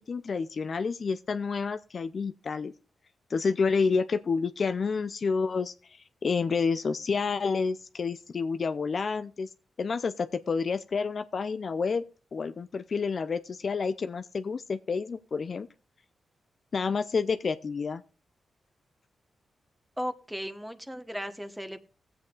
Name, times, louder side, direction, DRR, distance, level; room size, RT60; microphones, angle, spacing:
voice 1, 0.1-2.7 3.3-5.7 6.2-9.5 9.8-12.0 12.3-15.7 16.7-18.0, left 5 dB, 60° left, 0.5 m, -29 dB
voice 2, 20.0-21.8, equal, 5° right, 1.2 m, -36 dB
19.0 x 7.8 x 2.4 m
supercardioid pair, 40°, 0 cm